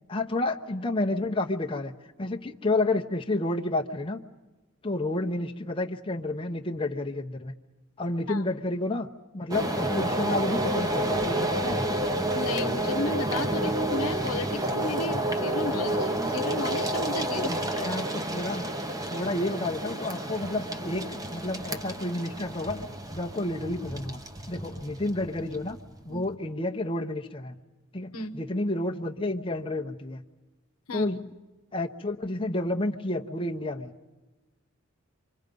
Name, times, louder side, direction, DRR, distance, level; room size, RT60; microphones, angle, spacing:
voice 1, 0.1-1.9 2.2-4.2 4.8-7.5 8.0-9.1 9.3-11.9 17.3-18.7 19.1-24.2 24.5-25.8 26.0-27.6 27.9-30.2 30.9-31.3 31.7-33.9, left 2 dB, 25° left, 2 dB, 0.8 m, -30 dB
sound 1, 9.5-26.3, right 1 dB, 15° right, 0.9 m, -30 dB
voice 2, 12.3-17.9 26.1-26.2 28.1-28.4 30.9-31.1, left 3 dB, 85° left, 9 dB, 0.9 m, -34 dB
28.0 x 24.5 x 5.3 m, 1.2 s
head